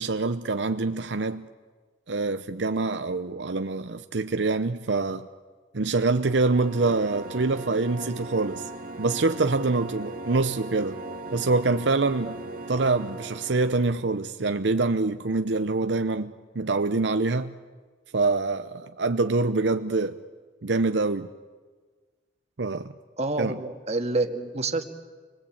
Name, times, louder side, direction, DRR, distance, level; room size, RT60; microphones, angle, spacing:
voice 1, 0.0-1.5 2.1-5.3 5.7-8.6 9.0-11.0 11.3-12.4 12.7-17.5 18.1-20.2 20.6-21.3 22.6-22.9 23.4-23.6, right 3 dB, 75° right, 0.8 m, -25 dB
sound 1, 6.1-13.9, right 2 dB, 55° right, 2.4 m, -38 dB
voice 2, 23.2-24.8, right 2 dB, 40° right, 1.9 m, -27 dB
29.0 x 22.5 x 8.7 m
head